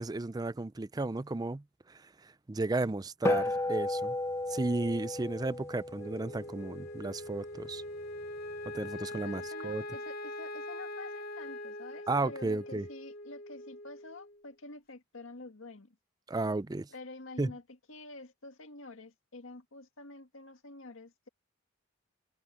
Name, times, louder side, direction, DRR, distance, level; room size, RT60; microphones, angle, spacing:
voice 1, 0.0-4.2 4.5-7.8 8.7-9.8 12.1-12.9 16.3-16.9 17.4-17.5, right 2 dB, 20° right, 0.4 m, -34 dB
sound 1, 3.2-7.9, left 1 dB, 15° left, 0.8 m, -34 dB
Wind instrument woodwind instrument, 6.0-14.4, left 1 dB, 45° left, 2.2 m, -42 dB
voice 2, 9.2-16.0 16.9-17.6 17.9-21.3, left 2 dB, 75° left, 1.9 m, -48 dB
head